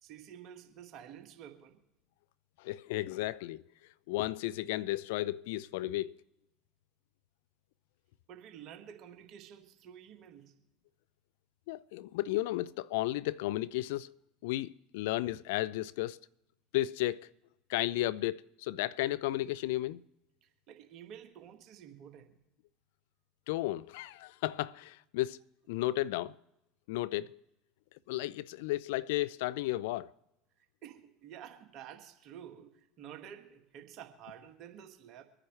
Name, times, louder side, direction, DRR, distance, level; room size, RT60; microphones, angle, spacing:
voice 1, 0.0-1.8 8.3-10.5 20.4-22.3 30.8-35.2, right 9 dB, 55° right, 1.6 m, -50 dB
voice 2, 2.6-3.6 4.1-6.2 11.7-14.2 14.4-16.2 16.7-17.3 17.7-20.0 23.5-25.4 25.7-26.4 26.9-27.4 28.1-30.1, left 16 dB, 70° left, 0.3 m, -33 dB
25.0 x 9.8 x 3.2 m
hypercardioid pair, 80°, 0 cm